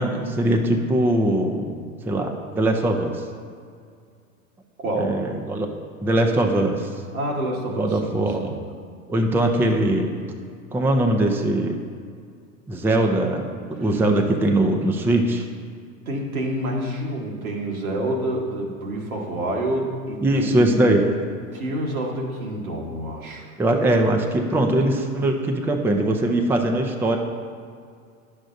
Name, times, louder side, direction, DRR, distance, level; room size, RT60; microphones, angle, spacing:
voice 1, 0.0-1.7 2.0-3.2 5.0-5.7 6.0-6.9 7.8-8.6 9.1-10.1 10.7-11.8 12.7-15.4 20.2-21.1 23.6-27.2, right 1 dB, 5° right, 3 dB, 0.4 m, -21 dB
voice 2, 4.8-5.2 7.1-8.6 9.5-9.9 13.8-14.0 16.0-21.1 21.5-23.5, right 1 dB, 90° right, -2 dB, 1.5 m, -28 dB
10.5 x 6.5 x 2.6 m, 2.2 s
hypercardioid pair, 95°, 41 cm